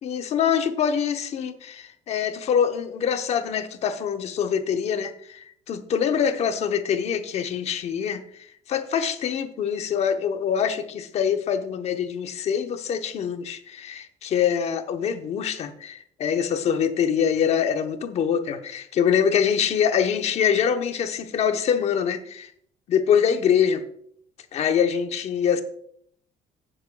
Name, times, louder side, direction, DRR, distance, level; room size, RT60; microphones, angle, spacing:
voice 1, 0.0-22.5 22.9-23.8 24.5-25.6, left 8 dB, 45° left, 7 dB, 0.8 m, -24 dB
15.0 x 7.4 x 2.3 m, 0.64 s
cardioid pair, 165°, 16 cm